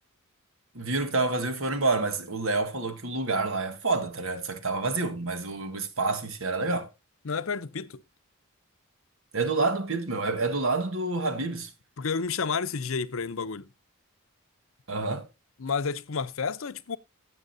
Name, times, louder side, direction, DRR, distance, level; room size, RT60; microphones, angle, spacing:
voice 1, 0.7-6.9 9.3-11.7 14.9-15.3, right 3 dB, 65° right, 1.6 m, -28 dB
voice 2, 7.2-8.0 12.0-13.7 15.6-17.0, left 5 dB, 65° left, 0.7 m, -30 dB
16.5 x 7.1 x 2.7 m
head